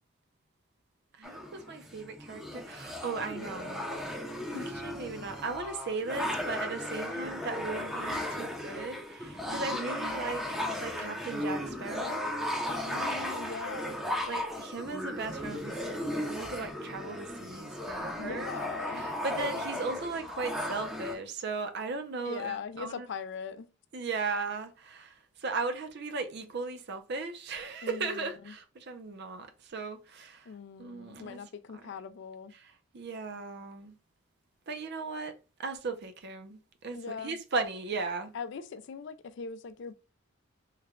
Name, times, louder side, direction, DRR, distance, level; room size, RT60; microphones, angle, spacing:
voice 1, 1.1-3.9 4.5-10.5 10.8-12.2 14.3-18.5 18.9-23.1 23.9-30.5 30.8-31.4 32.6-33.9 34.7-35.3 35.6-38.3, right 4 dB, 55° right, 0.6 m, -37 dB
sound 1, 1.2-21.1, left 1 dB, ahead, 0.5 m, -36 dB
voice 2, 12.8-14.0 18.2-19.0 22.2-23.7 27.8-28.5 30.5-32.5 36.9-37.4 38.3-40.0, left 6 dB, 60° left, 0.3 m, -40 dB
3.2 x 2.2 x 3.6 m
head